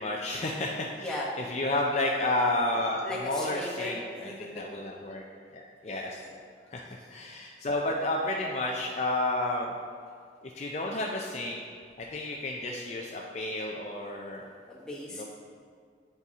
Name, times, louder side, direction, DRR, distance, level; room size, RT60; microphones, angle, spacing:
voice 1, 0.0-5.2 5.5-6.2 6.7-9.7 10.5-11.6 12.0-14.4 15.2-15.3, left 2 dB, 35° left, -1 dB, 0.4 m, -31 dB
voice 2, 0.9-1.3 3.0-4.6 5.8-6.1 14.5-15.3, left 1 dB, 5° left, -6 dB, 1.1 m, -37 dB
9.0 x 4.1 x 3.5 m, 2.1 s
head